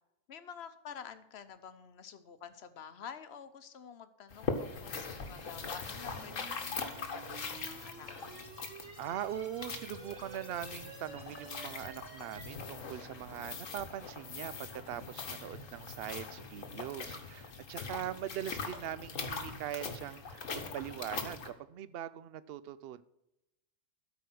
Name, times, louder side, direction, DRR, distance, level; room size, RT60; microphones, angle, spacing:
voice 1, 0.3-8.1, left 7 dB, 60° left, 1.0 m, -49 dB
sound 1, 4.3-21.5, left 4 dB, 85° left, 1.6 m, -42 dB
sound 2, 4.5-12.5, right 3 dB, 80° right, 2.2 m, -52 dB
voice 2, 9.0-23.0, right 11 dB, 60° right, 0.7 m, -41 dB
13.0 x 4.8 x 6.0 m
omnidirectional pair, 1.3 m